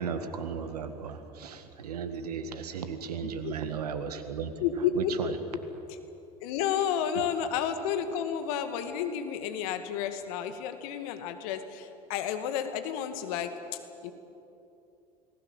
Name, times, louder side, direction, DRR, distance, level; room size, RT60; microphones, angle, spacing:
voice 1, 0.0-4.5 5.0-5.4, right 6 dB, 80° right, 9 dB, 1.9 m, -35 dB
voice 2, 3.2-3.7 4.6-5.6 5.9-6.0 6.4-14.1, left 8 dB, 65° left, 8 dB, 2.1 m, -31 dB
28.5 x 20.0 x 7.4 m, 2.8 s
hypercardioid pair, 70°, 20 cm